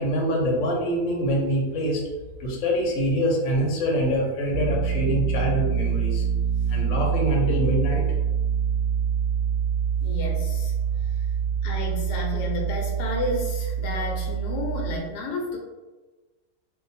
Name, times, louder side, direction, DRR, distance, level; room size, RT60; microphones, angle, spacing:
voice 1, 0.0-2.0 2.4-6.2 6.7-8.0, equal, 60° left, -1 dB, 1.1 m, -25 dB
sound 1, 4.5-15.0, right 7 dB, 65° right, 0.8 m, -25 dB
voice 2, 10.0-10.7 11.6-15.6, left 2 dB, 80° left, -1 dB, 1.2 m, -31 dB
2.6 x 2.4 x 4.0 m, 1.2 s
omnidirectional pair, 1.7 m